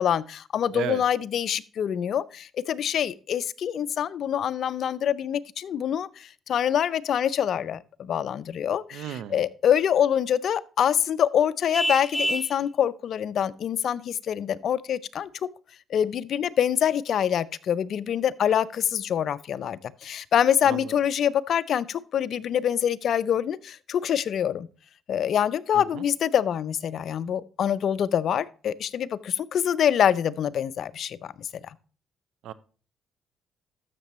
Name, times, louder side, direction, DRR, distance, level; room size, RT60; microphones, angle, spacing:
voice 1, 0.0-15.3 15.9-24.7 25.1-31.5, left 9 dB, 65° left, 0.5 m, -25 dB
voice 2, 8.9-9.4 20.6-20.9 25.7-26.0 32.4-32.5, right 11 dB, 85° right, 0.6 m, -34 dB
Vehicle horn car horn honking, 11.7-12.6, equal, ahead, 1.1 m, -27 dB
12.5 x 6.8 x 3.0 m
cardioid pair, 90°, 0 cm